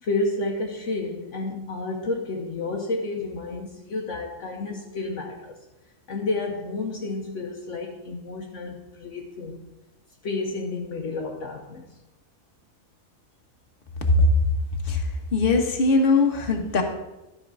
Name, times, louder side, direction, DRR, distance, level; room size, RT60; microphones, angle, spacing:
voice 1, 0.0-5.6 6.1-9.6 10.2-11.9, left 2 dB, 65° left, 1 dB, 1.2 m, -30 dB
voice 2, 14.8-16.8, left 2 dB, 45° left, 3 dB, 1.4 m, -20 dB
12.5 x 4.5 x 6.1 m, 1.0 s
omnidirectional pair, 1.4 m